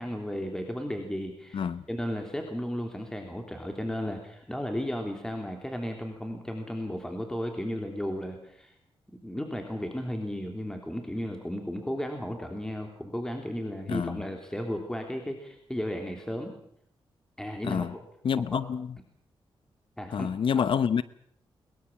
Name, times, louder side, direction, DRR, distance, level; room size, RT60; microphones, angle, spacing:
voice 1, 0.0-8.7 9.2-16.5 17.4-17.9 18.4-18.6 20.0-20.6, equal, 5° left, 3.3 m, -34 dB
voice 2, 13.9-14.2 17.6-17.9 18.2-18.9 20.1-21.0, left 7 dB, 65° left, 0.9 m, -27 dB
22.5 x 22.0 x 7.3 m
wide cardioid pair, 110°, 10 cm